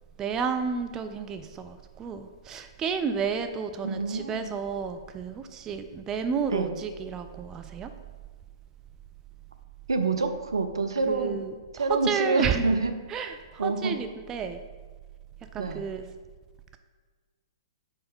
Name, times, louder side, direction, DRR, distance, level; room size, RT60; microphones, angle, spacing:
voice 1, 0.2-7.9 11.1-12.7 13.1-14.6 15.5-16.1, right 6 dB, 20° right, 8 dB, 0.4 m, -31 dB
voice 2, 3.8-4.5 6.5-6.7 9.9-11.4 11.7-12.9 13.6-14.0 15.6-15.8, right 3 dB, 70° right, 8 dB, 0.6 m, -27 dB
4.9 x 4.8 x 5.3 m, 1.4 s
figure-of-eight pair, 110°, 3 cm